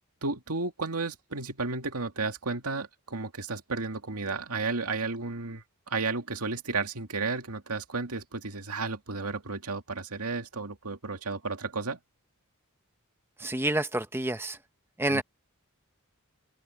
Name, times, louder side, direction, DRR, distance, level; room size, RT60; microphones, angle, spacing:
voice 1, 0.2-12.0 15.1-15.2, right 4 dB, 90° right, 2.2 m, -33 dB
voice 2, 13.4-14.6 15.0-15.2, right 1 dB, 10° right, 1.1 m, -28 dB
open air
head